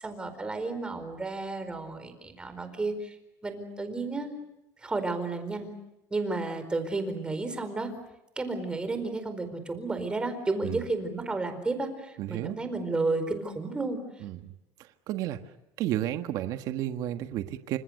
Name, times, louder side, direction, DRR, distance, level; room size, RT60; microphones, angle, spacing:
voice 1, 0.0-3.2 3.4-4.3 4.8-5.7 6.1-7.9 8.4-14.0, right 3 dB, 15° right, 9 dB, 4.6 m, -32 dB
voice 2, 12.2-12.6 14.2-14.5 14.8-15.4 15.8-17.8, right 13 dB, 60° right, 8 dB, 1.6 m, -32 dB
29.0 x 26.5 x 6.6 m, 0.91 s
cardioid pair, 145°, 7 cm